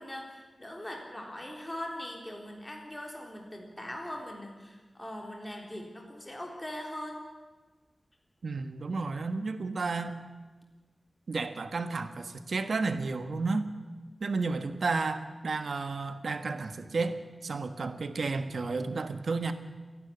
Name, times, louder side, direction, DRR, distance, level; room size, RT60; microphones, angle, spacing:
voice 1, 0.0-7.2, left 1 dB, 15° left, 1 dB, 3.7 m, -41 dB
voice 2, 8.4-10.2 11.3-13.6 14.2-19.5, right 3 dB, 75° right, 9 dB, 1.4 m, -32 dB
28.0 x 11.0 x 9.9 m, 1.3 s
wide cardioid pair, 90°, 0 cm